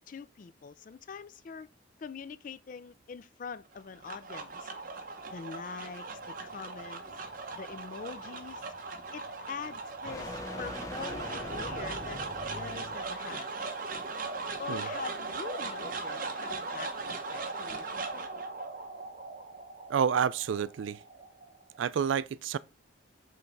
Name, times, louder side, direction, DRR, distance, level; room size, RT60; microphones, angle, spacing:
voice 1, 0.1-1.7 2.0-4.7 5.3-7.0 7.5-8.7 9.1-12.2 12.5-13.5 14.6-18.3, left 5 dB, 45° left, 0.3 m, -43 dB
sound 1, 3.7-22.1, right 3 dB, 45° right, 0.8 m, -39 dB
sound 2, 6.2-13.2, left 1 dB, 15° left, 0.7 m, -44 dB
voice 2, 19.9-21.0 21.8-22.6, right 7 dB, 80° right, 0.4 m, -29 dB
5.6 x 3.2 x 5.3 m
head